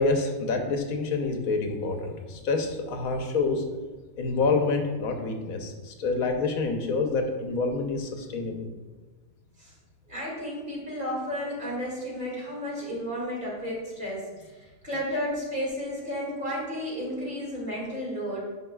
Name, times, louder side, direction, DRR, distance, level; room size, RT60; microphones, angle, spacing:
voice 1, 0.0-3.6 4.2-8.6, left 3 dB, 80° left, 4 dB, 1.3 m, -27 dB
voice 2, 10.1-18.4, equal, 35° right, -5 dB, 2.4 m, -33 dB
9.5 x 5.5 x 2.3 m, 1.3 s
omnidirectional pair, 1.5 m